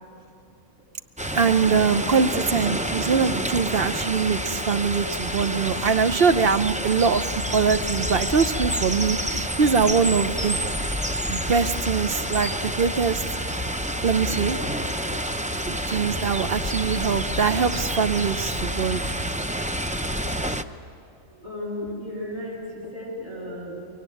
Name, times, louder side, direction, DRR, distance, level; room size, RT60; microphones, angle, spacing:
sound 1, 1.2-20.6, equal, 10° right, 0.4 m, -28 dB
voice 1, 1.3-10.6 11.3-13.7 14.0-14.6 15.7-19.2, right 5 dB, 55° right, 10 dB, 1.0 m, -23 dB
voice 2, 21.3-23.8, left 1 dB, 25° right, -4 dB, 8.1 m, -34 dB
25.0 x 22.5 x 9.2 m, 2.7 s
omnidirectional pair, 1.3 m